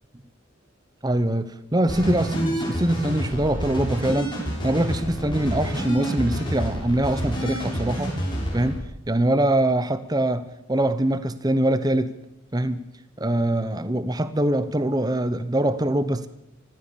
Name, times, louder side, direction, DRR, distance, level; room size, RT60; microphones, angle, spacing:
voice 1, 1.0-8.1 8.5-8.8 9.1-12.1 12.5-12.8 13.2-16.3, right 1 dB, 20° right, 0.9 m, -23 dB
sound 1, 1.9-8.7, equal, 25° left, 7.0 m, -28 dB
24.0 x 15.5 x 7.0 m
head